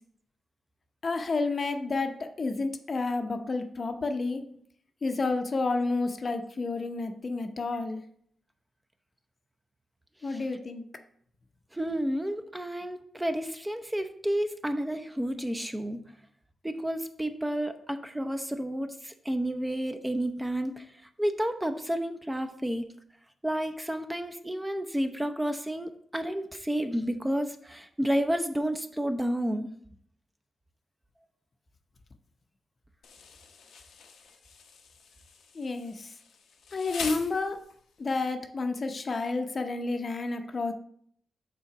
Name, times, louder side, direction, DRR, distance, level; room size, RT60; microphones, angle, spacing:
voice 1, 1.0-4.4 5.0-8.0 10.2-10.8 35.5-36.1 36.7-37.6 38.0-40.7, left 3 dB, 50° left, 6 dB, 0.7 m, -30 dB
voice 2, 11.7-16.0 16.6-20.8 21.2-22.8 23.4-29.7, equal, 10° right, 7 dB, 0.7 m, -31 dB
Insect, 33.0-38.0, left 5 dB, 90° left, 0.8 m, -43 dB
5.7 x 3.8 x 5.8 m, 0.65 s
cardioid pair, 65°, 0 cm